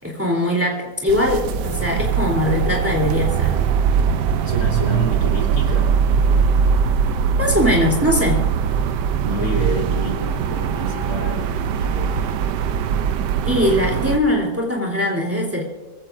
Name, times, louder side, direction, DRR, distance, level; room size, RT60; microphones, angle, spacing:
voice 1, 0.0-3.6 7.4-8.4 13.4-15.6, left 1 dB, 10° right, -2 dB, 3.1 m, -21 dB
sound 1, 1.1-14.2, right 6 dB, 90° right, 1.3 m, -21 dB
voice 2, 4.4-5.9 9.2-12.4, equal, 60° left, -1 dB, 3.7 m, -29 dB
24.5 x 16.5 x 2.6 m, 1.2 s
omnidirectional pair, 1.8 m